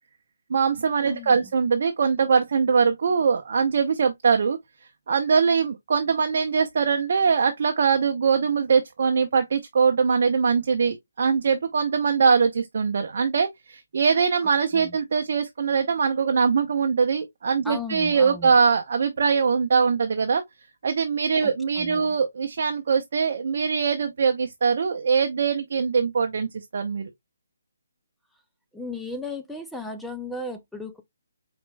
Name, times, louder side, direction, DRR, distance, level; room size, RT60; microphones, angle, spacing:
voice 1, 0.5-4.6 5.1-20.4 20.8-27.1, right 5 dB, 50° right, 0.7 m, -22 dB
voice 2, 1.1-1.4 14.7-15.0 17.6-18.6 21.4-21.5 21.8-22.2 28.7-31.0, left 2 dB, ahead, 0.4 m, -35 dB
4.9 x 4.3 x 2.2 m
hypercardioid pair, 170°, 0 cm